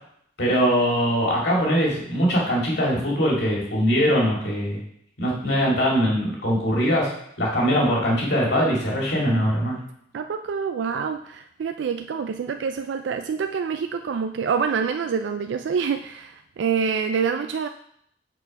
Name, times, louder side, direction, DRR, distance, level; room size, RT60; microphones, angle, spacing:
voice 1, 0.4-4.8 5.2-7.1 7.4-9.8, equal, 65° left, -3 dB, 2.3 m, -22 dB
voice 2, 10.1-17.7, right 6 dB, 75° right, 7 dB, 0.3 m, -26 dB
6.3 x 4.4 x 5.3 m, 0.70 s
head